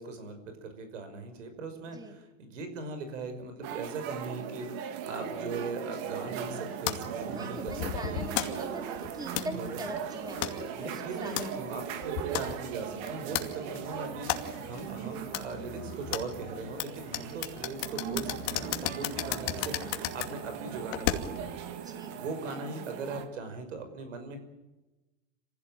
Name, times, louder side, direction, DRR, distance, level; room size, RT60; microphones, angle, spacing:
voice 1, 0.0-8.2 9.5-9.8 10.8-24.4, right 3 dB, 90° right, 8 dB, 5.7 m, -40 dB
sound 1, 3.6-23.3, right 8 dB, 50° right, 2.9 m, -39 dB
sound 2, 6.9-21.5, left 12 dB, 55° left, 2.6 m, -36 dB
voice 2, 7.3-11.6 21.8-22.2, right 1 dB, 10° right, 4 dB, 3.4 m, -42 dB
26.0 x 16.0 x 8.9 m, 1.1 s
supercardioid pair, 130°, 36 cm